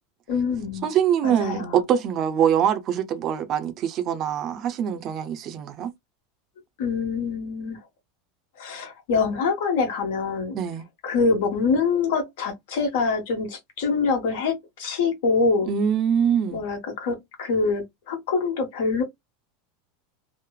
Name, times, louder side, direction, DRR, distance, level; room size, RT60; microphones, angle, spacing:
voice 1, 0.3-0.9 1.2-1.8 6.8-7.8 8.6-10.6 11.0-14.5 14.8-15.7 16.5-19.0, left 4 dB, 75° left, 1.2 m, -25 dB
voice 2, 0.8-5.9 10.5-10.9 15.7-16.6, right 8 dB, 40° right, 0.4 m, -23 dB
3.0 x 2.0 x 2.2 m
supercardioid pair, 145°, 0 cm